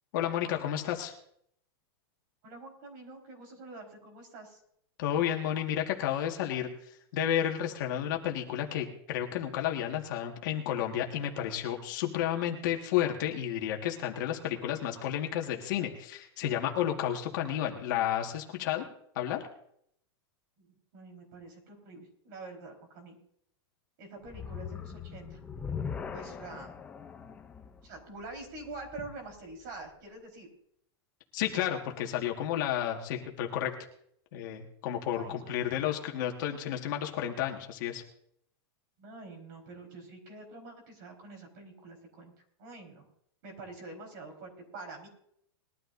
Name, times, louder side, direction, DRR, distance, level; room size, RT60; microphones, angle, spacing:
voice 1, 0.1-1.2 5.0-6.7 7.1-18.9 19.2-19.4 31.3-33.7 34.3-38.0, left 10 dB, 50° left, 2 dB, 1.8 m, -31 dB
voice 2, 2.4-4.6 20.6-23.2 24.0-25.4 26.1-26.7 27.8-30.5 35.1-35.9 39.0-42.3 42.6-43.0 43.4-45.1, right 3 dB, 45° right, 2 dB, 4.5 m, -46 dB
sound 1, 24.2-29.5, left 6 dB, 10° left, 0.6 m, -41 dB
21.0 x 12.5 x 2.7 m, 0.70 s
supercardioid pair, 165°, 13 cm